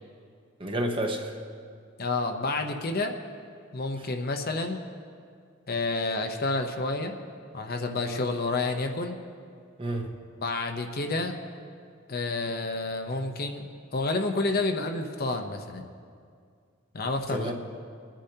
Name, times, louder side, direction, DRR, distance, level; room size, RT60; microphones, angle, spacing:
voice 1, 0.6-1.4 8.1-8.2 9.8-10.2 17.3-17.5, right 1 dB, 25° right, 3 dB, 0.9 m, -30 dB
voice 2, 2.0-3.1 3.7-4.8 5.7-7.2 7.5-9.2 10.4-11.4 12.1-13.6 13.9-15.8 16.9-17.5, left 3 dB, 45° left, 4 dB, 0.8 m, -29 dB
28.5 x 10.0 x 2.8 m, 2.2 s
head